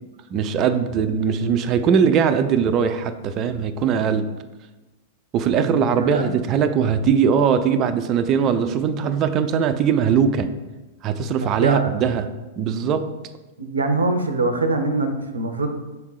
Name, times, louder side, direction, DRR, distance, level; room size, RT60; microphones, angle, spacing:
voice 1, 0.3-4.3 5.3-10.5 11.0-12.3 12.6-13.1, right 7 dB, 35° right, 10 dB, 0.5 m, -20 dB
voice 2, 5.6-6.4 11.5-11.9 13.6-15.7, right 2 dB, 80° right, 7 dB, 0.6 m, -23 dB
6.4 x 3.6 x 4.8 m, 1.1 s
figure-of-eight pair, 100°, 0 cm